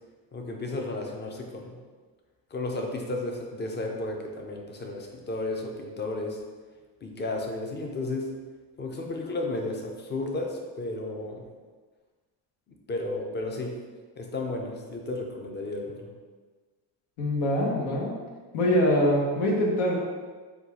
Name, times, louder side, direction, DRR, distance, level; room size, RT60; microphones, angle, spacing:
voice 1, 0.3-1.8 2.5-6.4 7.0-8.4 8.8-11.4 12.9-13.8 14.2-16.1, left 2 dB, 20° left, 1 dB, 0.5 m, -33 dB
voice 2, 17.2-18.1 18.5-20.0, left 1 dB, 80° left, -2 dB, 1.2 m, -24 dB
4.4 x 2.4 x 4.1 m, 1.4 s
cardioid pair, 110°, 48 cm